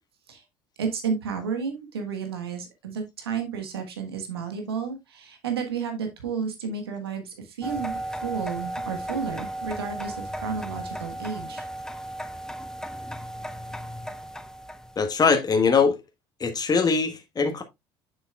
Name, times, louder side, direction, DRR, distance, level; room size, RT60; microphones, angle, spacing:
voice 1, 0.8-11.6, right 6 dB, 90° right, 1.5 m, -32 dB
sound 1, 7.6-15.1, right 1 dB, 5° left, 0.7 m, -35 dB
voice 2, 15.0-15.9 16.4-17.6, left 5 dB, 30° left, 1.4 m, -22 dB
7.1 x 6.9 x 2.3 m
hypercardioid pair, 60°, 13 cm